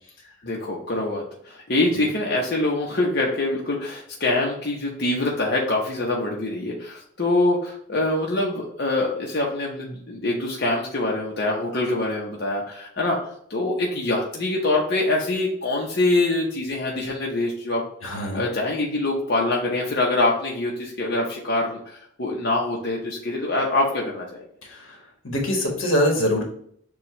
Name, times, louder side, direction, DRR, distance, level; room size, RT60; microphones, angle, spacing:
voice 1, 0.4-13.2 13.5-24.4, left 2 dB, 55° left, -2 dB, 0.8 m, -24 dB
voice 2, 18.0-18.5 24.7-25.0 25.2-26.4, equal, 85° left, 1 dB, 1.4 m, -24 dB
6.9 x 2.4 x 3.1 m, 0.67 s
head